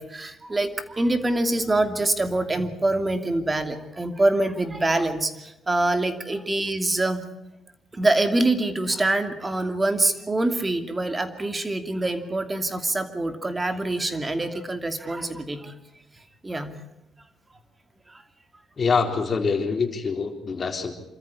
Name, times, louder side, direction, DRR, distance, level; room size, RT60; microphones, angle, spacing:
voice 1, 0.0-7.2 7.9-15.7 16.4-16.7 18.1-18.2, right 2 dB, 20° right, 9 dB, 2.7 m, -25 dB
voice 2, 18.8-20.9, left 5 dB, 40° left, 5 dB, 3.9 m, -25 dB
26.5 x 14.0 x 9.9 m, 0.89 s
cardioid pair, 90°, 0 cm